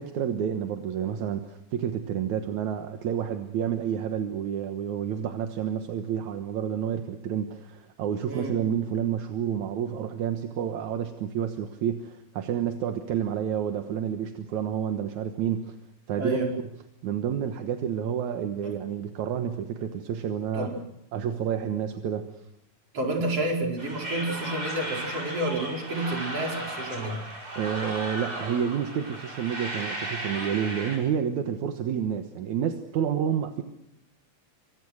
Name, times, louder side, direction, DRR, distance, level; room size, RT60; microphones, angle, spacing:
voice 1, 0.0-15.8 16.1-16.4 17.0-20.7 21.1-22.4 27.6-33.6, right 8 dB, 80° right, 6 dB, 2.7 m, -29 dB
voice 2, 8.2-8.7 16.2-16.5 18.6-18.7 20.5-20.8 22.9-27.2, right 1 dB, 50° right, 1 dB, 5.8 m, -30 dB
sound 1, 23.8-31.0, right 1 dB, 30° right, 6.2 m, -35 dB
27.0 x 25.0 x 6.4 m, 0.81 s
omnidirectional pair, 3.4 m